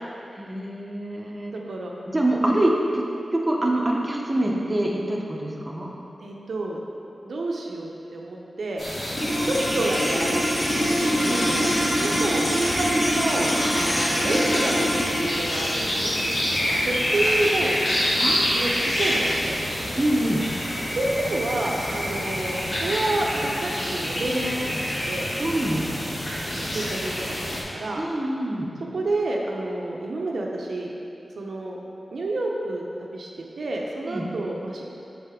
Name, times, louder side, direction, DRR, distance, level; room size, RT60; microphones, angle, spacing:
voice 1, 0.4-1.5 2.1-3.0 3.3-5.9 11.3-11.5 18.2-18.6 20.0-20.5 25.4-25.9 28.0-28.7 34.1-34.3, right 1 dB, 20° right, -2 dB, 0.6 m, -25 dB
voice 2, 1.5-1.9 6.2-6.8 7.2-8.8 9.4-15.1 15.4-17.8 18.4-19.9 20.9-25.3 26.5-28.0 28.9-30.9 31.4-31.8 32.1-33.3 33.6-34.8, right 2 dB, 75° right, -1 dB, 0.5 m, -29 dB
sound 1, 8.8-27.6, equal, 55° left, 1.4 m, -27 dB
sound 2, 9.1-19.6, equal, 30° left, 0.9 m, -26 dB
6.4 x 4.2 x 3.5 m, 2.7 s
wide cardioid pair, 100°, 0 cm